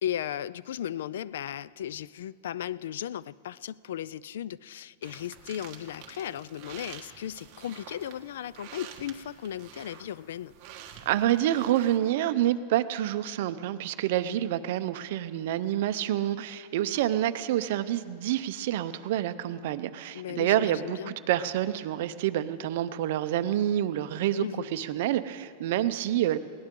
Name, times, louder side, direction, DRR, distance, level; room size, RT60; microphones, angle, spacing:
voice 1, 0.0-10.5 20.1-21.1 24.4-24.6, left 10 dB, 80° left, 21 dB, 0.3 m, -36 dB
sound 1, 5.0-12.0, right 8 dB, 35° right, 1.5 m, -48 dB
voice 2, 11.1-24.5 24.7-26.4, right 12 dB, 55° right, 11 dB, 0.6 m, -28 dB
21.5 x 17.5 x 3.8 m, 2.2 s
supercardioid pair, 170°, 0 cm